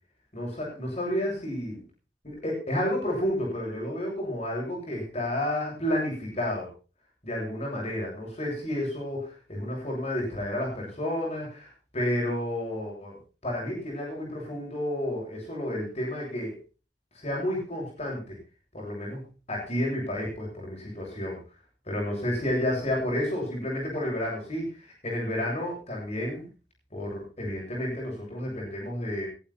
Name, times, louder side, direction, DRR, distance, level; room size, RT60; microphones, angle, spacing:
voice 1, 0.3-1.8 2.2-6.7 7.2-13.2 13.4-16.6 17.1-18.3 18.7-21.4 21.9-26.5 26.9-29.3, left 1 dB, 35° left, -2 dB, 7.7 m, -31 dB
20.5 x 11.5 x 4.4 m, 0.35 s
head